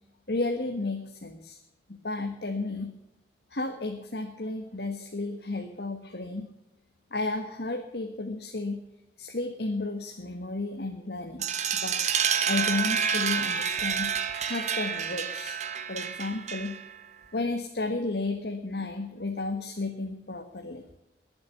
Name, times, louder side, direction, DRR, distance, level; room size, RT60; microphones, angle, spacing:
voice 1, 0.3-1.6 2.0-2.9 3.5-6.4 7.1-8.8 9.2-11.4 11.7-12.0 12.5-14.1 14.4-15.6 15.9-16.8 17.3-20.8, left 2 dB, 60° left, 4 dB, 1.5 m, -32 dB
sound 1, 11.4-17.0, right 7 dB, 40° right, 1.1 m, -29 dB
21.5 x 7.9 x 7.0 m, 0.85 s
head